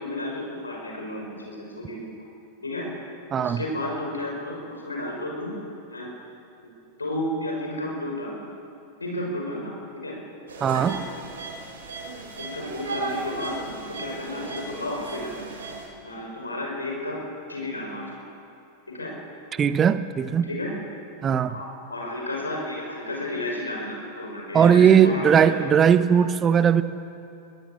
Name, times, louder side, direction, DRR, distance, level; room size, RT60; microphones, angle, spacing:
voice 1, 0.0-2.0 2.6-2.8 3.4-5.5 5.9-6.1 6.6-6.7 7.0-8.4 9.0-9.7 10.0-10.2 10.7-10.8 12.4-15.4 16.0-17.2 17.5-18.3 18.9-19.1 20.5-20.7 21.5-25.5, left 1 dB, 80° left, -1 dB, 6.0 m, -32 dB
voice 2, 3.3-3.6 10.6-11.0 19.5-20.5 21.2-21.6 24.5-26.8, right 8 dB, 25° right, 14 dB, 0.8 m, -18 dB
sound 1, 10.5-15.9, right 3 dB, 65° right, 5.1 m, -35 dB
22.5 x 16.0 x 7.5 m, 2.6 s
figure-of-eight pair, 90°, 0 cm